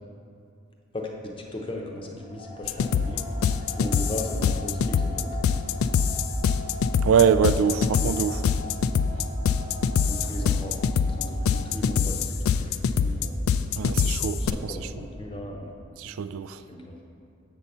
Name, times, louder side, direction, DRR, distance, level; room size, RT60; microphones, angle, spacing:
voice 1, 0.9-3.3 3.8-5.6 10.0-12.7 13.0-13.4 14.4-15.8 16.7-17.0, left 1 dB, 25° left, 0.7 m, -37 dB
sound 1, 2.0-11.2, left 1 dB, 20° right, 0.6 m, -45 dB
sound 2, 2.4-11.7, left 2 dB, 60° left, 0.9 m, -45 dB
sound 3, 2.6-14.5, left 6 dB, 85° left, 0.3 m, -24 dB
voice 2, 7.0-8.5 13.8-14.9 16.0-16.6, right 7 dB, 75° right, 0.3 m, -24 dB
7.3 x 4.2 x 6.6 m
head